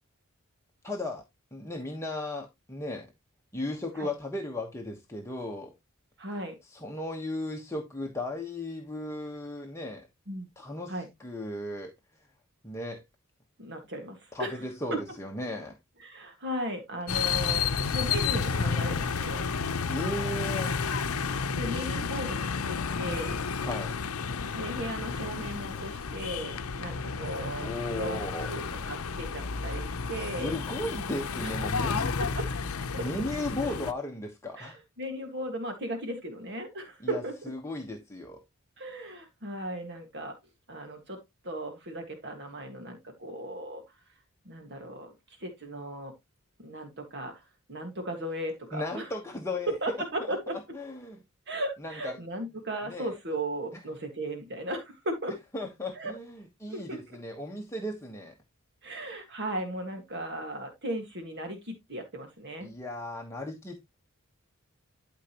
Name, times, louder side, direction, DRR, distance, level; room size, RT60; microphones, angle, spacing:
voice 1, 0.8-1.2 1.5-3.1 3.5-5.7 6.7-10.1 10.6-11.9 12.6-13.0 14.3-15.8 19.9-20.8 23.6-23.9 27.6-28.5 30.2-32.2 32.9-34.8 37.0-38.4 48.7-49.7 50.2-51.2 51.8-52.1 52.9-53.1 55.5-58.3 62.6-63.9, left 1 dB, 15° left, 1.2 m, -36 dB
voice 2, 6.2-6.6 10.3-10.5 10.9-11.1 13.6-14.6 14.9-15.0 16.0-19.4 21.5-23.4 24.5-28.2 28.5-30.5 32.2-32.5 32.9-33.1 33.6-33.8 34.6-37.3 38.8-40.4 40.7-41.2 41.4-43.8 44.5-46.1 46.6-47.4 47.7-49.1 49.7-50.6 51.5-55.4 55.9-56.1 56.7-57.0 58.8-62.7, right 1 dB, 50° right, 1.8 m, -36 dB
sound 1, 17.1-33.9, left 5 dB, 80° left, 0.7 m, -31 dB
12.5 x 5.1 x 3.0 m
head